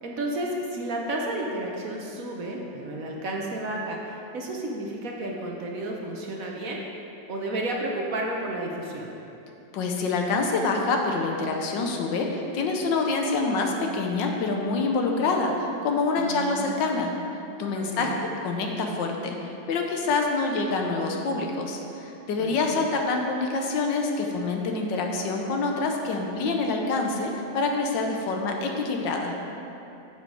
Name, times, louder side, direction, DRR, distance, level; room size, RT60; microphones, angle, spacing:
voice 1, 0.0-6.8 7.3-9.1 16.1-16.7 17.7-18.2 22.4-22.8, right 1 dB, 55° right, 0 dB, 1.1 m, -32 dB
voice 2, 9.7-17.1 17.6-29.3, left 3 dB, 75° left, 2 dB, 1.5 m, -26 dB
9.0 x 7.0 x 4.7 m, 2.8 s
omnidirectional pair, 2.0 m